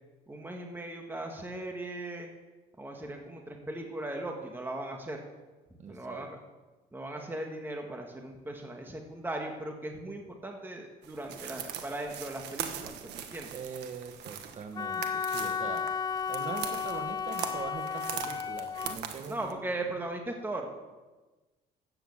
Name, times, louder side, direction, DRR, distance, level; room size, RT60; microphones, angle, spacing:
voice 1, 0.3-2.3 2.8-5.2 5.9-6.4 6.9-13.5 19.3-20.7, right 2 dB, 10° right, 2 dB, 1.8 m, -38 dB
voice 2, 5.8-6.3 13.5-15.9 16.3-19.7, right 5 dB, 45° right, 8 dB, 1.6 m, -42 dB
sound 1, 11.0-19.5, right 9 dB, 85° right, 1.5 m, -41 dB
Wind instrument woodwind instrument, 14.8-19.0, left 6 dB, 25° left, 0.4 m, -33 dB
14.5 x 9.0 x 7.3 m, 1.2 s
cardioid pair, 110°, 17 cm